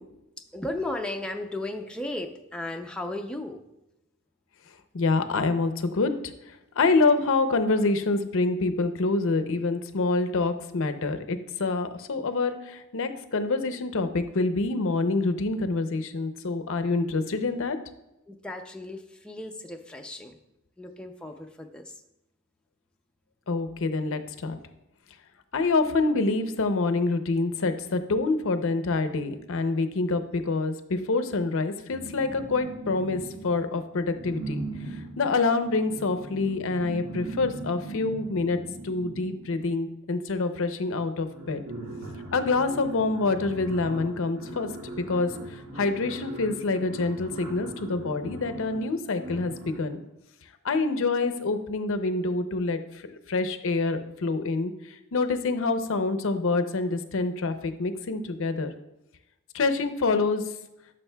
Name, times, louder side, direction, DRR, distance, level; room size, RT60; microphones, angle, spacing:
voice 1, 0.5-3.6 18.3-20.4 20.8-22.0, left 1 dB, 5° left, 3 dB, 0.4 m, -35 dB
voice 2, 4.9-17.8 23.5-24.6 25.5-34.6 34.9-38.6 38.8-41.6 42.3-44.7 45.0-50.0 50.6-58.7 59.5-60.4, left 3 dB, 65° left, 9 dB, 0.6 m, -26 dB
sound 1, 31.9-33.7 34.1-39.8 40.7-40.8 41.1-50.0, right 2 dB, 80° right, 1.8 m, -39 dB
11.5 x 6.2 x 2.2 m, 0.92 s
head